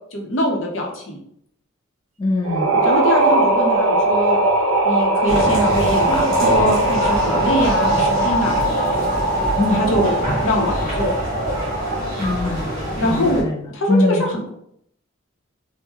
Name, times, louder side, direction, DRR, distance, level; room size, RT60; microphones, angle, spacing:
voice 1, 0.1-1.2 2.8-4.4 4.8-8.8 9.7-10.1 10.4-11.1 13.0-13.4 13.7-14.5, equal, 65° left, 0 dB, 0.7 m, -23 dB
voice 2, 2.2-2.9 9.6-9.8 12.2-12.7 13.0-14.3, left 2 dB, 20° left, -2 dB, 0.4 m, -22 dB
sound 1, 2.4-12.2, right 2 dB, 90° right, 0.4 m, -19 dB
sound 2, 5.3-13.4, equal, 45° right, 1.3 m, -27 dB
3.6 x 2.1 x 2.8 m, 0.72 s
head